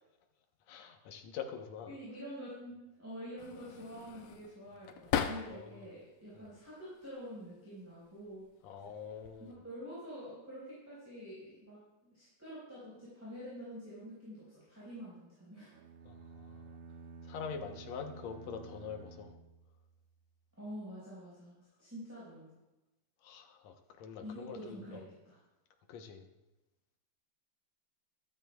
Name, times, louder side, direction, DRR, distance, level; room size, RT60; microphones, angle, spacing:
voice 1, 0.7-1.9 5.5-5.9 6.3-6.5 8.6-9.6 16.0-16.8 17.2-19.3 23.2-25.0 25.9-26.3, left 6 dB, 70° left, 5 dB, 2.0 m, -45 dB
voice 2, 1.9-8.4 9.4-15.7 20.6-22.5 24.2-25.0 25.2-25.4, equal, 5° right, -8 dB, 4.1 m, -47 dB
sound 1, 3.4-5.9 6.3-7.1 8.1-8.4 8.7-9.5, left 9 dB, 85° left, 1.3 m, -39 dB
sound 2, 15.7-20.1, right 3 dB, 75° right, 2.0 m, -52 dB
14.5 x 13.0 x 2.3 m, 0.97 s
omnidirectional pair, 3.5 m